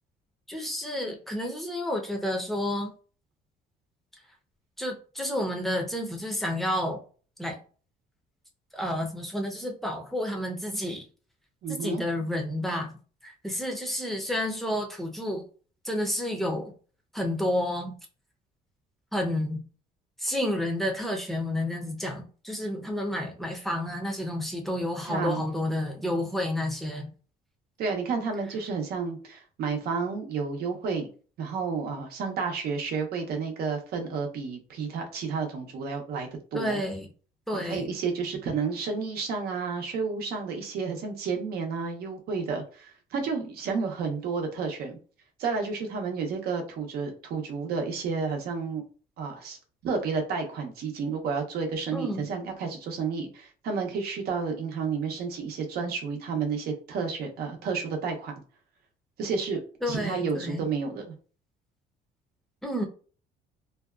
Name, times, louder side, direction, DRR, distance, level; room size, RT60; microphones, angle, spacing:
voice 1, 0.5-2.9 4.8-7.0 7.4-7.6 8.7-11.0 11.7-12.9 13.2-15.4 15.8-16.7 17.1-18.0 19.1-19.6 20.2-27.1 36.5-37.1 37.5-37.9 51.9-52.3 59.8-60.6 62.6-62.9, left 1 dB, ahead, 1 dB, 0.6 m, -30 dB
voice 2, 11.6-12.0 25.1-25.4 27.8-31.1 31.4-36.8 37.5-45.0 45.4-48.8 49.2-49.6 49.8-58.3 59.2-59.6 59.9-61.1, right 5 dB, 65° right, 3 dB, 0.7 m, -31 dB
2.7 x 2.2 x 2.3 m, 0.39 s
cardioid pair, 110°, 17 cm